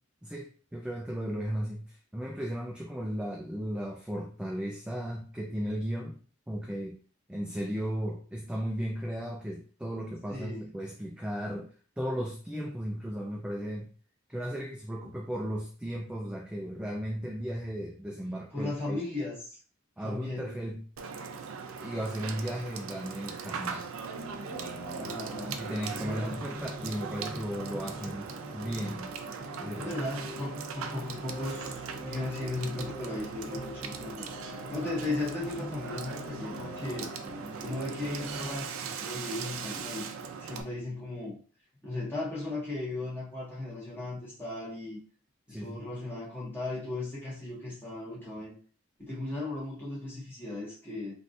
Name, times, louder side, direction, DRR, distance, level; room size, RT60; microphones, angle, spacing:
voice 1, 0.2-6.2 6.5-7.0 7.3-11.7 12.0-13.9 14.3-19.0 20.0-20.8 21.8-23.9 25.6-29.1 29.6-30.0 45.5-45.8, equal, 5° right, 0 dB, 0.3 m, -35 dB
voice 2, 10.3-10.7 18.5-19.6 20.0-20.6 25.0-25.6 25.9-26.4 29.7-34.3 34.7-37.1 37.6-40.0 40.4-41.4 41.8-45.0 45.5-48.5 49.0-51.1, left 2 dB, 10° left, -7 dB, 1.4 m, -36 dB
Water / Water tap faucet / Sink (filling or washing), 21.0-40.6, right 6 dB, 80° right, 0.4 m, -40 dB
sound 1, 24.1-38.6, equal, 30° right, 0.9 m, -43 dB
3.3 x 2.6 x 2.6 m, 0.40 s
head